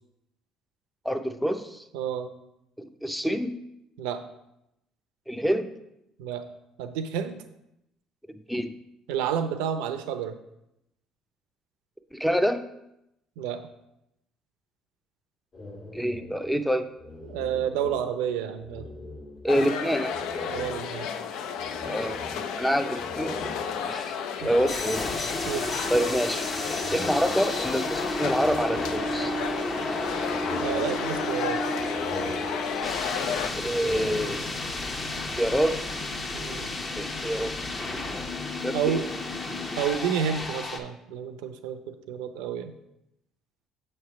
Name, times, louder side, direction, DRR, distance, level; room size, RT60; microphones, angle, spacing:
voice 1, 1.0-1.8 2.8-3.5 5.3-5.7 8.5-8.7 12.1-12.6 15.9-16.9 19.4-20.1 21.8-23.4 23.9-25.1 25.9-26.4 26.9-29.4 32.7-33.1 33.5-34.5 35.4-35.8 37.0-37.5 37.9-38.0 38.6-39.0, equal, ahead, 9 dB, 0.5 m, -27 dB
voice 2, 1.9-2.3 4.0-4.2 6.2-6.5 6.8-7.4 9.1-10.4 13.4-13.6 17.2-18.9 20.5-21.1 24.4-24.6 25.5-25.7 30.6-31.6 36.3-36.7 38.7-39.1 39.8-42.7, right 8 dB, 90° right, 9 dB, 0.6 m, -30 dB
sound 1, 15.5-18.3 18.6-19.7 20.1-25.6 26.5-27.8 28.2-29.5 29.9-31.4 31.8-33.1 33.5-34.9, left 2 dB, 50° left, 1.4 m, -41 dB
sound 2, 19.5-33.5, left 7 dB, 75° left, 0.4 m, -33 dB
sound 3, 24.7-40.8, left 1 dB, 35° left, 0.9 m, -32 dB
7.3 x 3.3 x 5.8 m, 0.84 s
supercardioid pair, 95°, 0 cm